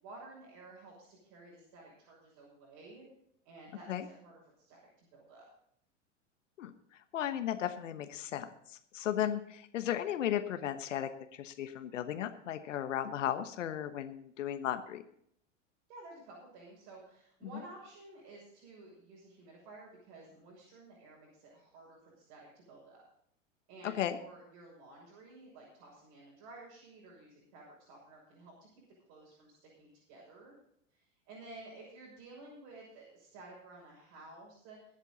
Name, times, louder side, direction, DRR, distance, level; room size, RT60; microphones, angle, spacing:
voice 1, 0.0-3.0 3.4-5.4 15.9-23.0 23.7-28.8 29.1-30.5 30.9-34.8, right 2 dB, 50° right, -4 dB, 6.6 m, -53 dB
voice 2, 6.6-15.0 17.5-17.6 23.8-24.2, left 10 dB, 75° left, 9 dB, 1.2 m, -35 dB
23.0 x 8.2 x 4.1 m, 0.70 s
hypercardioid pair, 105°, 37 cm